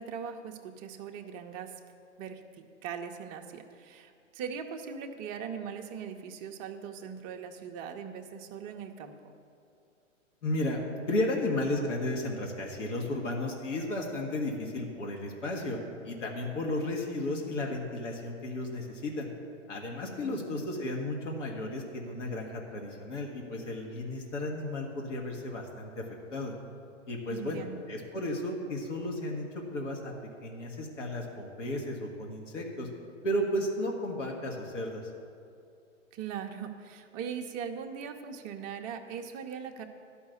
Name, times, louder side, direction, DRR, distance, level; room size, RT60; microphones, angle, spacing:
voice 1, 0.0-1.7 2.2-9.1 20.2-20.7 27.3-28.0 36.1-39.8, right 7 dB, 20° right, 4 dB, 0.5 m, -40 dB
voice 2, 10.4-10.8 11.1-15.8 16.0-19.3 19.7-26.0 26.3-26.5 27.1-30.1 30.4-32.9 33.2-35.0, left 1 dB, 70° left, -1 dB, 1.9 m, -33 dB
12.0 x 5.6 x 8.1 m, 2.4 s
hypercardioid pair, 125°, 38 cm